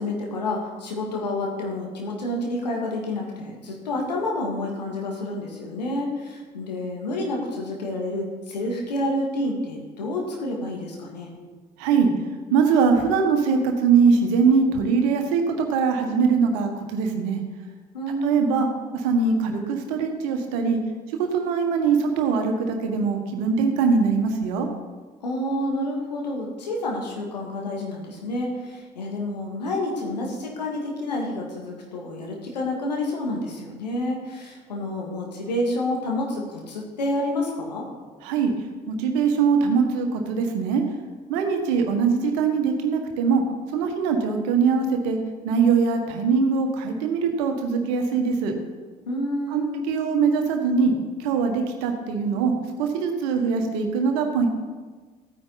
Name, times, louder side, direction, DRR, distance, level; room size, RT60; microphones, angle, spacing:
voice 1, 0.0-11.3 17.9-18.6 25.2-37.8 49.1-49.8, left 1 dB, 80° left, -1 dB, 2.1 m, -29 dB
voice 2, 11.8-12.1 12.5-17.4 18.2-18.7 19.0-20.8 21.2-24.7 38.2-38.5 38.9-40.8 41.3-43.4 43.7-45.2 45.4-48.5 49.5-50.9 51.2-52.5 52.8-54.5, right 5 dB, 65° right, 4 dB, 1.7 m, -22 dB
15.0 x 9.4 x 4.1 m, 1.4 s
figure-of-eight pair, 55°, 21 cm